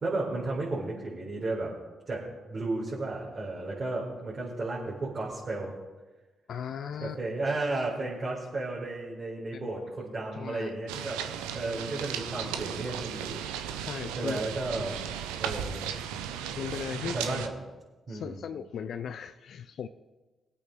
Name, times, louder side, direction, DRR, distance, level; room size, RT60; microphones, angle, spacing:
voice 1, 0.0-1.7 2.1-5.7 7.0-11.2 11.5-13.8 14.2-15.0 15.4-15.9 17.0-17.5 18.1-18.4, right 2 dB, 45° right, 4.3 m, -33 dB
voice 2, 6.5-7.2 9.5-9.9 10.4-10.7 13.9-14.4 16.6-17.2 18.1-19.9, left 8 dB, 65° left, 0.5 m, -37 dB
sound 1, 10.9-17.5, right 9 dB, 85° right, 0.7 m, -36 dB
21.5 x 8.5 x 3.9 m
hypercardioid pair, 45°, 0 cm